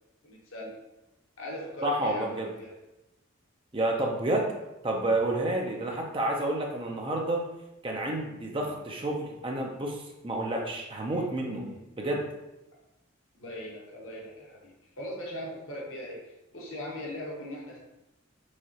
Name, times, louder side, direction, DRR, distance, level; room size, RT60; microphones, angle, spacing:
voice 1, 0.2-0.7 1.4-2.8 5.6-5.9 11.1-11.3 11.5-11.8 13.4-16.2 16.5-17.8, equal, 80° left, -3 dB, 1.1 m, -40 dB
voice 2, 1.8-2.5 3.7-4.5 4.8-7.5 7.8-11.7 12.0-12.2, right 1 dB, 25° right, 0 dB, 0.6 m, -29 dB
4.8 x 3.7 x 2.9 m, 0.95 s
head